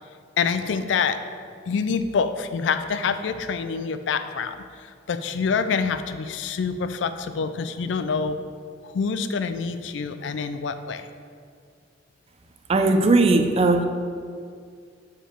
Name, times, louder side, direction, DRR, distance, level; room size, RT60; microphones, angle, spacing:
voice 1, 0.4-1.2 1.7-8.4 8.8-11.1, left 5 dB, 75° left, 10 dB, 0.4 m, -26 dB
voice 2, 12.7-13.8, right 2 dB, 35° right, 6 dB, 0.4 m, -18 dB
7.0 x 4.5 x 4.4 m, 2.2 s
head